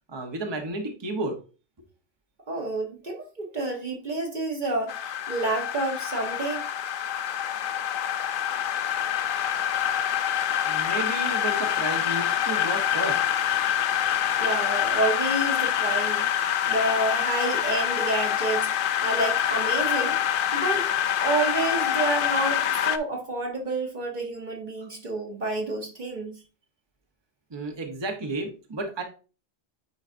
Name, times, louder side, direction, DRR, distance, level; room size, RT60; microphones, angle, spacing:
voice 1, 0.1-1.3 10.6-13.2 24.8-24.9 27.5-29.0, right 2 dB, 25° right, 0.9 m, -32 dB
voice 2, 2.5-6.6 14.4-16.3 16.7-18.7 19.0-20.2 20.5-20.9 21.2-26.4, right 2 dB, 45° right, 1.1 m, -29 dB
sound 1, 4.9-23.0, left 10 dB, 60° left, 0.6 m, -26 dB
9.4 x 3.9 x 2.5 m
omnidirectional pair, 1.2 m